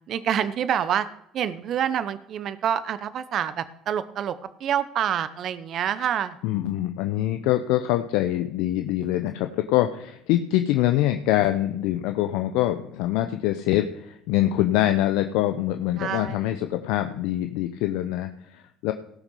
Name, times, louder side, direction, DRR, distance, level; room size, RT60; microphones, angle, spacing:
voice 1, 0.1-1.1 1.3-6.4 16.0-16.4, right 9 dB, 55° right, 14 dB, 0.8 m, -27 dB
voice 2, 6.4-18.9, left 14 dB, 75° left, 7 dB, 0.7 m, -24 dB
17.5 x 6.1 x 5.5 m, 0.77 s
hypercardioid pair, 65°, 0 cm